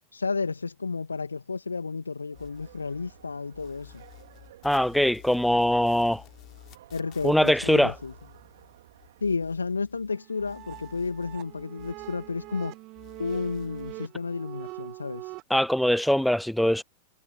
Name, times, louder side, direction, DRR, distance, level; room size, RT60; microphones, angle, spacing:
voice 1, 0.1-4.0 6.9-8.1 9.2-12.7 13.2-15.3, left 4 dB, 75° left, 1.9 m, -32 dB
sound 1, 2.3-9.2, right 13 dB, 60° right, 2.7 m, -54 dB
sound 2, 2.4-3.3 3.5-10.1 10.4-12.7 12.9-13.9, left 17 dB, 35° left, 4.4 m, -52 dB
voice 2, 4.6-6.2 7.2-7.9 15.5-16.8, equal, ahead, 0.4 m, -22 dB
sound 3, 10.1-15.4, right 21 dB, 40° right, 1.1 m, -43 dB
figure-of-eight pair, 90°, 0 cm